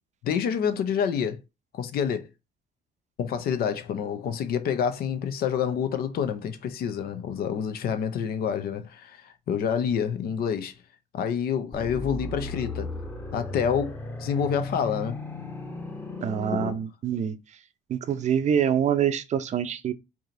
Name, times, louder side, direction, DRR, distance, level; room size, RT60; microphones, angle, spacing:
voice 1, 0.2-1.4 1.7-2.3 3.2-10.7 11.1-12.9 13.3-15.2 16.5-16.8, left 7 dB, 65° left, 0.8 m, -28 dB
sound 1, 11.7-16.7, left 2 dB, 10° left, 1.0 m, -36 dB
voice 2, 16.2-17.4 17.9-19.9, right 8 dB, 45° right, 0.6 m, -25 dB
4.8 x 2.9 x 2.6 m
cardioid pair, 110°, 17 cm